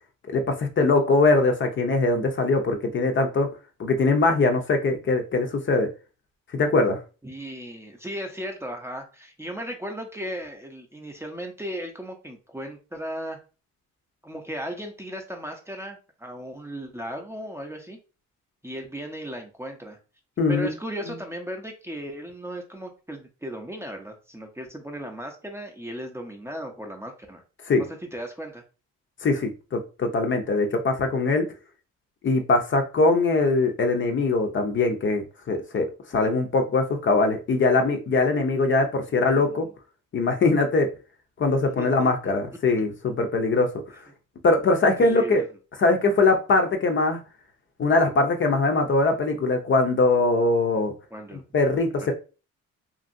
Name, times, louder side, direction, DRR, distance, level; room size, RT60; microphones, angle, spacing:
voice 1, 0.3-3.5 3.8-5.9 6.5-7.0 20.4-20.7 27.7-27.8 29.2-31.4 32.2-39.7 40.1-40.9 41.4-43.7 44.4-45.4 45.8-47.2 47.8-50.9 51.5-52.1, left 3 dB, 40° left, 5 dB, 0.6 m, -22 dB
voice 2, 7.2-13.4 14.2-18.0 18.6-20.0 20.5-27.4 28.1-28.6 39.4-39.6 41.8-42.1 45.0-45.5 51.1-51.4, equal, 10° right, 2 dB, 0.6 m, -36 dB
2.9 x 2.5 x 2.5 m, 0.33 s
cardioid pair, 90°, 30 cm